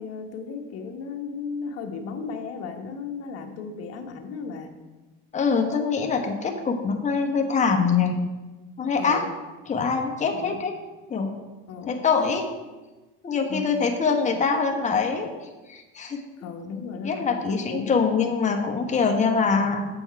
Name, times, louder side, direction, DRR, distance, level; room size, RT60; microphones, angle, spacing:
voice 1, 0.0-4.7 9.0-9.3 10.3-10.6 11.7-12.0 13.5-13.8 16.4-18.2, left 5 dB, 55° left, 4 dB, 1.1 m, -35 dB
voice 2, 5.3-8.1 8.8-9.2 9.7-10.7 11.1-11.3 11.9-12.4 13.2-15.3 15.7-16.2 17.0-19.9, left 5 dB, 25° left, 3 dB, 1.1 m, -24 dB
8.1 x 5.4 x 4.6 m, 1.2 s
supercardioid pair, 115°, 30 cm